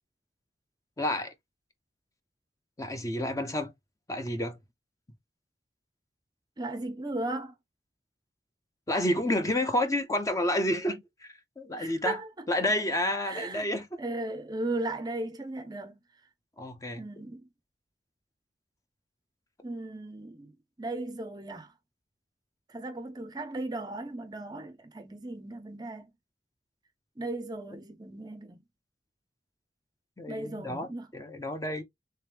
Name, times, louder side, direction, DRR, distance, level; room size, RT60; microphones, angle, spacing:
voice 1, 1.0-1.3 2.8-3.7 4.1-4.6 8.9-11.0 11.6-12.2 12.5-13.9 16.6-17.0 30.2-30.9 31.1-31.8, left 1 dB, 20° left, 0.6 m, -29 dB
voice 2, 6.6-7.5 11.7-12.5 13.2-13.7 14.0-16.0 17.0-17.5 19.6-21.7 22.7-26.1 27.2-28.6 30.3-31.1, right 2 dB, 25° right, 0.5 m, -36 dB
3.3 x 3.0 x 3.3 m
head